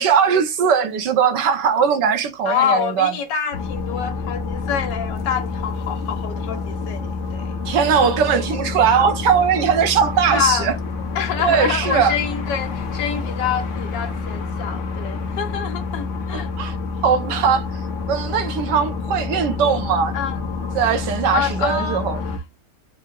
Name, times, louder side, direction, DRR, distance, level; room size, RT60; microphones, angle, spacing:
voice 1, 0.0-3.1 7.6-10.8 11.4-12.2 16.3-16.8 17.0-17.7 18.1-20.2 20.7-22.2, right 7 dB, 80° right, 1.4 m, -19 dB
voice 2, 2.4-7.5 10.2-10.7 11.1-16.5 20.1-20.4 21.3-22.0, left 8 dB, 80° left, 1.5 m, -26 dB
sound 1, 3.5-22.4, left 4 dB, 60° left, 0.9 m, -28 dB
4.6 x 2.0 x 3.7 m
omnidirectional pair, 1.9 m